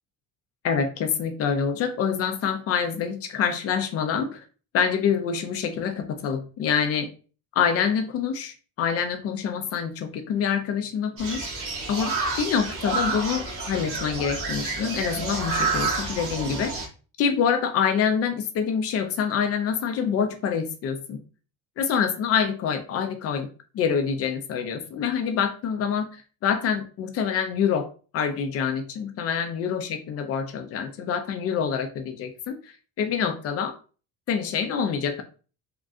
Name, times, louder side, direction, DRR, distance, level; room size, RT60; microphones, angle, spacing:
voice 1, 0.6-4.4 4.7-7.1 7.5-11.5 11.9-16.8 17.2-21.2 21.8-23.5 23.7-27.9 28.1-33.7 34.3-35.2, left 7 dB, 45° left, 8 dB, 0.5 m, -26 dB
sound 1, 11.2-16.9, right 3 dB, 40° right, 1.3 m, -29 dB
3.6 x 2.2 x 2.6 m, 0.37 s
cardioid pair, 130°, 34 cm